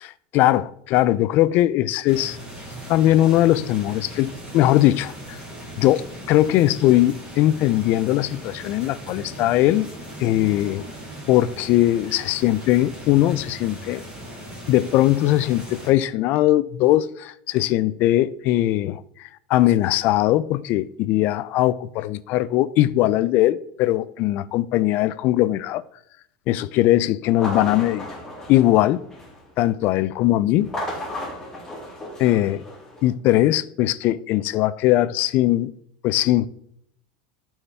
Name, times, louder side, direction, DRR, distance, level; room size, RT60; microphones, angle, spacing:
voice 1, 0.0-2.4 2.9-5.4 5.8-9.9 10.2-10.8 11.3-14.0 14.7-19.0 19.5-25.8 26.5-28.1 28.5-29.0 29.6-30.7 32.2-32.6 33.0-35.7 36.0-36.5, left 15 dB, 45° left, 0.4 m, -20 dB
sound 1, 2.1-15.9, right 1 dB, 20° right, 2.8 m, -38 dB
sound 2, 27.3-29.5 30.6-33.1, left 1 dB, 10° left, 2.5 m, -34 dB
11.0 x 4.4 x 3.4 m
supercardioid pair, 140°, 4 cm